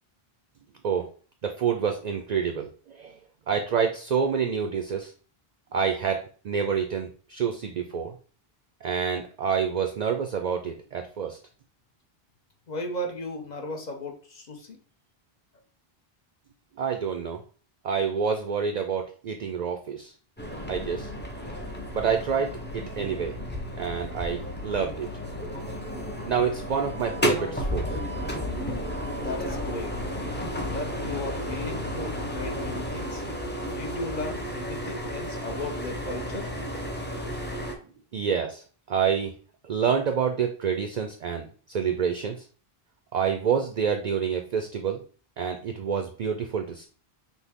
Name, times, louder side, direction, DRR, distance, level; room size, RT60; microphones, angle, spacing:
voice 1, 1.4-3.2 3.5-5.1 5.7-8.1 8.8-11.4 16.8-17.4 17.8-20.1 20.7-21.1 21.3-21.6 21.9-23.4 23.8-25.1 26.2-28.0 38.1-39.3 39.6-42.4 43.1-45.0 45.4-46.9, right 6 dB, 55° right, 6 dB, 0.5 m, -28 dB
voice 2, 12.7-14.8 29.1-29.9 30.7-33.2 33.8-36.5, left 1 dB, 50° left, 2 dB, 0.8 m, -36 dB
sound 1, 20.4-37.7, equal, 15° left, 0.5 m, -33 dB
6.0 x 2.2 x 3.5 m, 0.41 s
omnidirectional pair, 1.0 m